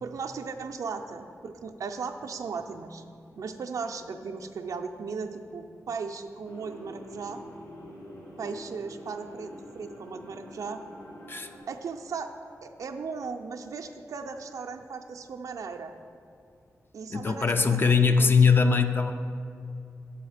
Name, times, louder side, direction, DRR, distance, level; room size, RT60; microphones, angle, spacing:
voice 1, 0.0-3.0 3.4-7.4 8.4-10.8 11.7-12.3 12.6-15.9 16.9-18.3, right 5 dB, 80° right, 5 dB, 0.4 m, -37 dB
sound 1, 6.4-11.6, left 1 dB, 80° left, 1.7 m, -45 dB
voice 2, 17.1-19.1, left 5 dB, 40° left, 7 dB, 0.4 m, -21 dB
7.8 x 4.1 x 6.3 m, 2.5 s
wide cardioid pair, 115°, 6 cm